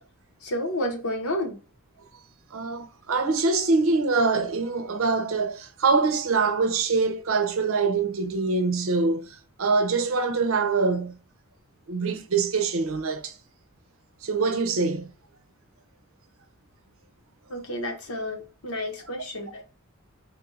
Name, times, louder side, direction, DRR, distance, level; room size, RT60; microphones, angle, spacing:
voice 1, 0.4-1.6 17.5-19.6, left 1 dB, 85° left, 1.1 m, -30 dB
voice 2, 2.5-9.2 9.6-11.2 11.9-13.3 14.2-15.1, right 4 dB, 70° right, 0.6 m, -24 dB
3.6 x 2.3 x 3.9 m
head